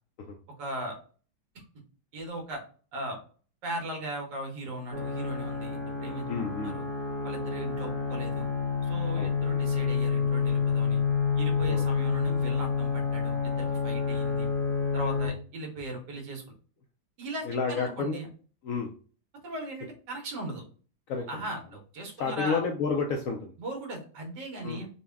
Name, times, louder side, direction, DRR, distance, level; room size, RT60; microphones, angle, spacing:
voice 1, 0.6-1.0 1.5-1.6 2.1-2.6 2.9-3.2 3.6-6.3 6.6-6.9 7.2-8.5 8.8-11.0 11.3-14.5 14.9-16.4 17.2-18.3 19.4-20.6 21.3-22.6 23.6-24.9, right 1 dB, 75° right, 2 dB, 1.7 m, -38 dB
sound 1, 4.9-15.3, left 5 dB, 45° right, 1.1 m, -28 dB
voice 2, 6.3-6.7 9.2-9.3 11.7-11.9 17.4-18.2 18.6-18.9 21.1-21.4 22.2-23.5 24.6-24.8, left 5 dB, 70° left, 3 dB, 0.8 m, -30 dB
4.0 x 2.2 x 3.4 m, 0.40 s
omnidirectional pair, 1.8 m